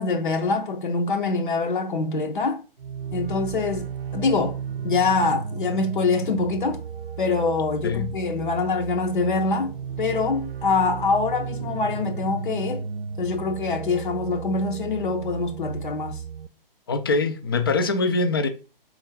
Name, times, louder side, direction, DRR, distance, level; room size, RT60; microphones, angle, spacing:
voice 1, 0.0-2.6 3.1-4.6 4.8-6.8 7.2-12.9 13.2-16.2, left 4 dB, 60° left, 0.7 m, -24 dB
sound 1, 2.8-16.5, right 6 dB, 85° right, 0.5 m, -34 dB
voice 2, 16.9-18.5, left 3 dB, 25° left, 0.3 m, -23 dB
4.3 x 3.4 x 3.5 m
figure-of-eight pair, 130°, 29 cm